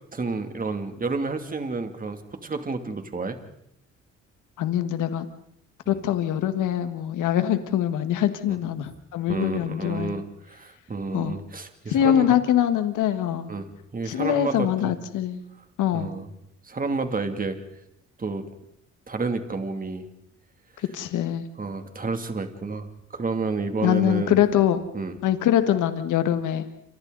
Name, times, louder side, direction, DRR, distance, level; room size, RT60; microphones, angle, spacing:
voice 1, 0.1-3.4 5.9-6.0 8.5-8.6 9.3-12.3 13.5-14.9 15.9-16.3 16.6-17.6 18.2-18.5 19.1-20.1 21.6-24.4 24.9-25.1, right 3 dB, 30° right, 6 dB, 2.8 m, -30 dB
voice 2, 4.6-5.3 5.9-10.1 11.1-11.3 11.9-13.5 14.1-15.4 15.8-16.1 20.8-21.4 23.8-24.8 25.2-26.7, left 10 dB, 85° left, 9 dB, 1.7 m, -23 dB
28.5 x 26.0 x 4.1 m, 0.78 s
cardioid pair, 90°, 30 cm